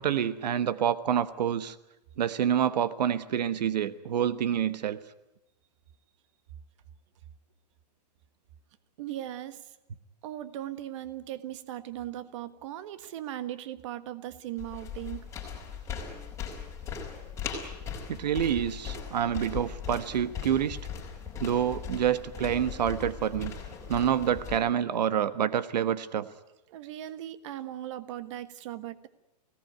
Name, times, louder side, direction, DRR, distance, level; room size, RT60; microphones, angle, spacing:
voice 1, 0.0-1.7 2.2-5.0 18.1-20.8 21.4-23.5 23.9-26.3, right 9 dB, 80° right, 13 dB, 1.2 m, -27 dB
voice 2, 9.0-9.7 10.2-15.3 26.7-29.1, right 12 dB, 45° right, 12 dB, 1.5 m, -38 dB
sound 1, 14.6-24.6, left 7 dB, 15° left, 5.0 m, -39 dB
24.5 x 18.0 x 9.4 m, 0.96 s
hypercardioid pair, 155°, 21 cm